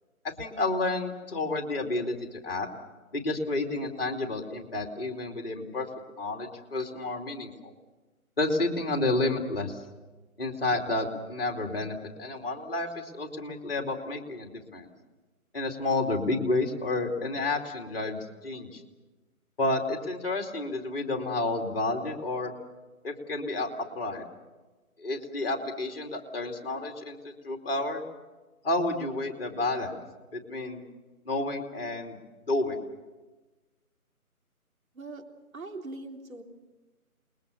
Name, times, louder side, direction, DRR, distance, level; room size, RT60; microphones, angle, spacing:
voice 1, 0.2-2.7 3.1-5.9 6.2-7.7 8.4-9.8 10.4-14.9 15.5-18.8 19.6-22.5 23.0-23.7 23.9-24.3 25.0-27.2 27.4-28.0 28.6-30.0 30.3-30.8 31.3-32.8, left 2 dB, 40° left, 3 dB, 2.7 m, -30 dB
voice 2, 35.5-36.4, right 2 dB, 65° right, 2 dB, 3.6 m, -41 dB
28.5 x 21.5 x 6.8 m, 1.2 s
figure-of-eight pair, 160°, 44 cm